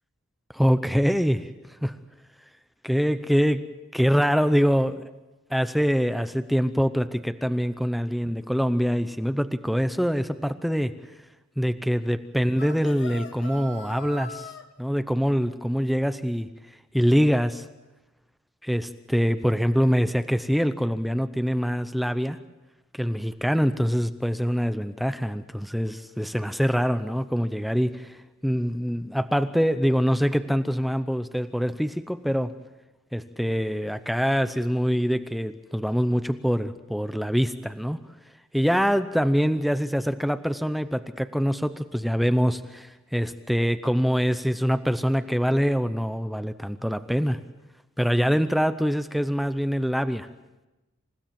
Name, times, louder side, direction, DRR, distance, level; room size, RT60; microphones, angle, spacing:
voice 1, 0.5-1.5 1.8-2.0 2.8-3.6 3.9-5.1 5.5-10.9 11.6-14.5 14.8-16.5 16.9-17.7 18.6-22.4 23.0-28.2 28.4-32.5 33.1-38.0 38.5-47.4 48.0-50.3, equal, ahead, 10 dB, 0.7 m, -24 dB
sound 1, 12.6-14.7, left 1 dB, 60° left, 1.7 m, -40 dB
28.0 x 16.0 x 7.5 m, 1.0 s
head